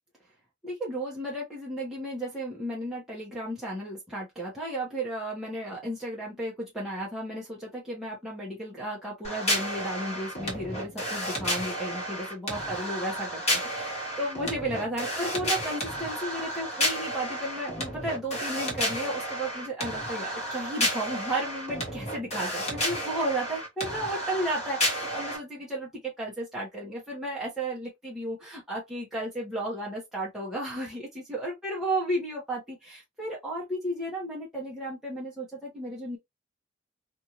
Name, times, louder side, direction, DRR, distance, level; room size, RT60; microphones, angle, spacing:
voice 1, 0.6-36.2, right 1 dB, ahead, 1.0 m, -34 dB
sound 1, 9.2-25.4, equal, 35° left, 1.2 m, -31 dB
2.6 x 2.6 x 2.9 m
head